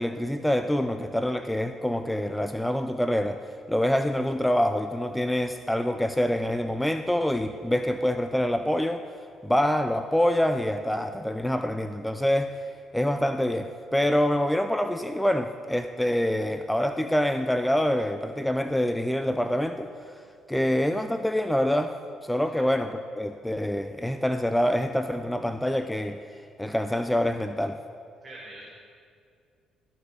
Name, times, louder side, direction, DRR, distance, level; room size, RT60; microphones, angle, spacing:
voice 1, 0.0-3.4 3.7-9.0 9.4-12.6 12.9-20.2 20.5-21.9 22.2-26.2 26.6-27.8, left 1 dB, 5° left, 8 dB, 0.3 m, -26 dB
voice 2, 28.2-28.6, right 2 dB, 35° right, -5 dB, 2.0 m, -44 dB
13.0 x 4.7 x 3.3 m, 2.3 s
hypercardioid pair, 60°, 0 cm